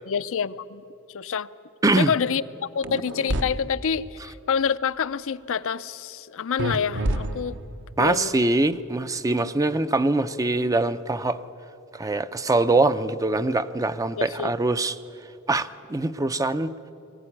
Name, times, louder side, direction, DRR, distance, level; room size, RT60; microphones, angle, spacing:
voice 1, 0.1-0.8 1.1-1.5 2.0-7.6 8.0-8.4 14.2-14.5, left 6 dB, 65° left, 13 dB, 0.5 m, -27 dB
sound 1, 2.8-3.4 6.6-7.8, right 1 dB, 60° right, 1.0 m, -27 dB
voice 2, 8.0-11.4 11.9-14.9 15.5-16.7, right 2 dB, 15° right, 12 dB, 0.5 m, -23 dB
21.5 x 15.5 x 9.9 m, 2.7 s
head